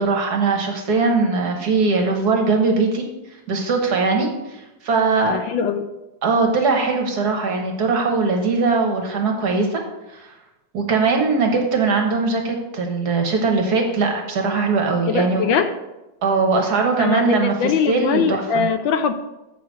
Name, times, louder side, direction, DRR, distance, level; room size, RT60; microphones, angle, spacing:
voice 1, 0.0-3.1 3.5-5.4 6.2-9.8 10.1-10.2 10.7-15.5 16.2-18.7, right 4 dB, 55° right, 3 dB, 1.5 m, -20 dB
voice 2, 5.3-5.9 15.1-15.7 17.0-19.1, left 6 dB, 75° left, 9 dB, 1.3 m, -21 dB
7.6 x 5.0 x 6.2 m, 0.98 s
omnidirectional pair, 2.2 m